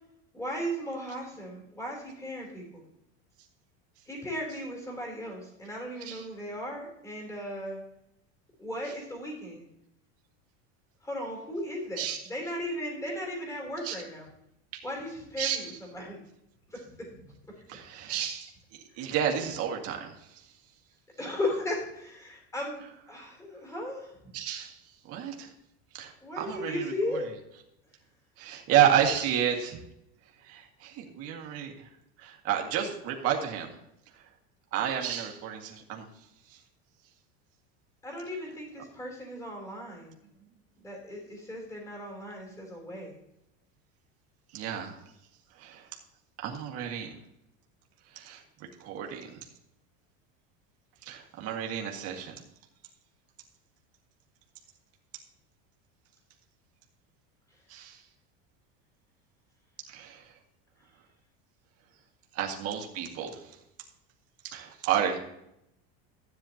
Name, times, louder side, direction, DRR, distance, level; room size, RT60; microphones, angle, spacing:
voice 1, 0.3-2.8 4.1-7.8 8.6-9.6 11.0-14.3 14.8-16.2 16.7-17.3 18.9-19.1 21.2-22.8 23.1-24.2 26.2-27.3 38.0-40.1 40.8-43.1, left 1 dB, 10° left, 0 dB, 3.5 m, -36 dB
voice 2, 17.7-20.4 24.3-24.8 25.0-25.5 25.9-27.2 28.4-29.8 30.4-31.9 32.2-33.8 34.1-34.2 34.7-36.1 36.5-36.6 42.5-42.8 44.5-45.0 45.6-45.9 46.4-47.2 48.1-49.4 51.0-52.3 57.7-58.0 59.9-60.4 62.3-63.6 64.4-65.2, right 9 dB, 45° right, 2 dB, 2.0 m, -31 dB
13.0 x 9.6 x 2.9 m, 0.80 s
cardioid pair, 160°, 33 cm